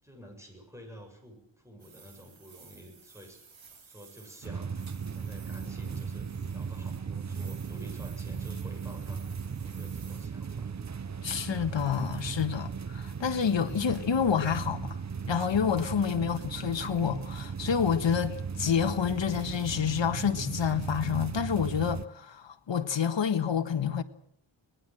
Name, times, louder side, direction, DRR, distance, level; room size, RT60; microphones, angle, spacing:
voice 1, 0.0-3.4 3.8-4.8 5.1-10.7, equal, 5° right, 7.1 m, -50 dB
sound 1, 1.8-4.5 4.8-7.0 7.3-10.3, right 5 dB, 70° right, 3.4 m, -55 dB
sound 2, 4.4-22.1, right 6 dB, 35° right, 0.8 m, -37 dB
voice 2, 11.2-15.0 15.3-24.0, left 7 dB, 65° left, 1.5 m, -28 dB
23.0 x 19.5 x 7.7 m
wide cardioid pair, 140°, 48 cm